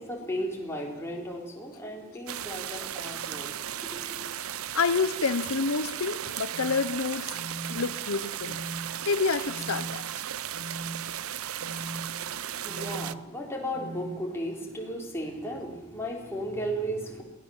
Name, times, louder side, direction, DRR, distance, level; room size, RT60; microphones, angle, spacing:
voice 1, 0.0-4.3 12.2-17.2, equal, 10° left, -1 dB, 4.1 m, -35 dB
sound 1, 2.3-13.1, right 10 dB, 85° right, 0.7 m, -36 dB
voice 2, 4.7-7.4 7.7-10.0, left 4 dB, 80° left, 12 dB, 0.9 m, -28 dB
sound 2, 6.5-6.7 7.3-7.7 8.4-8.8 9.5-9.9 10.5-10.9 11.6-12.0 12.7-13.1 13.7-14.1, right 1 dB, 30° right, 8.0 m, -40 dB
22.5 x 17.5 x 7.3 m, 0.95 s
head